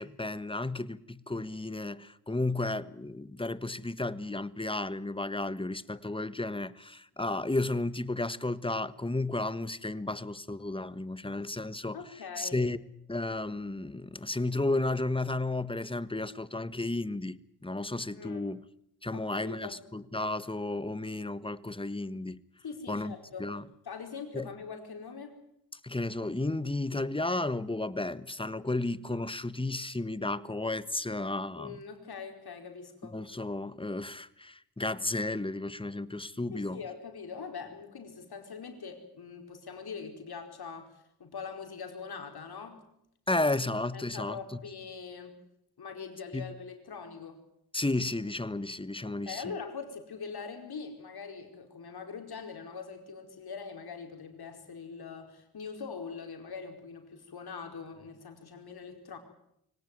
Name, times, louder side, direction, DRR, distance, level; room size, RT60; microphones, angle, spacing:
voice 1, 0.0-12.0 12.4-12.8 13.1-18.6 19.0-22.4 22.9-23.1 23.4-23.6 24.3-24.5 25.7-31.8 33.1-36.8 43.3-44.4 46.3-46.5 47.7-49.5, left 2 dB, 15° left, 1.3 m, -33 dB
voice 2, 11.9-12.6 18.1-18.5 19.1-19.8 22.6-23.6 23.8-25.4 31.6-33.2 36.5-42.8 43.9-45.4 45.8-47.4 49.0-59.2, left 5 dB, 70° left, 4.9 m, -43 dB
24.5 x 18.0 x 9.3 m
cardioid pair, 55°, 39 cm